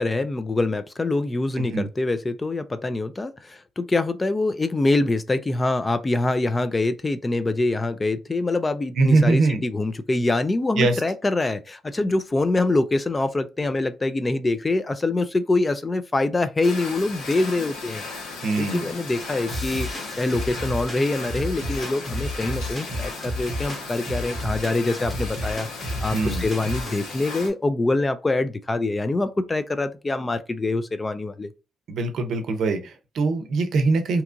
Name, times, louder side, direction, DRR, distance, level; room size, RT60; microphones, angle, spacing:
voice 1, 0.0-18.0 18.6-19.9 20.2-25.7 26.0-31.5, left 2 dB, 25° left, 0.3 m, -24 dB
voice 2, 9.0-9.6 10.8-11.0 18.4-18.8 26.1-26.4 31.9-34.2, right 3 dB, 70° right, 0.6 m, -22 dB
sound 1, 16.6-27.5, left 3 dB, 90° left, 0.9 m, -36 dB
sound 2, 19.5-27.0, equal, 10° left, 1.0 m, -32 dB
2.8 x 2.3 x 2.5 m
cardioid pair, 90°, 0 cm